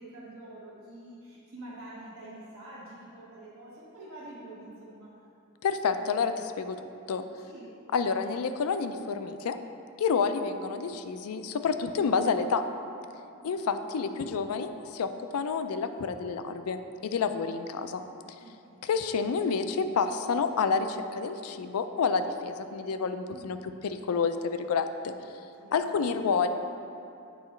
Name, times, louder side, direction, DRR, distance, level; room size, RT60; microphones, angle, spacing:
voice 1, 0.0-5.1 7.4-7.7 13.3-13.6 18.4-18.9 23.3-23.6 25.6-26.1, right 1 dB, 70° right, -9 dB, 1.1 m, -47 dB
voice 2, 5.6-6.8 7.1-7.2 7.9-9.6 10.0-12.6 13.4-18.0 18.8-25.1 25.7-26.5, left 5 dB, 80° left, 9 dB, 0.4 m, -29 dB
8.5 x 4.8 x 3.1 m, 2.6 s
head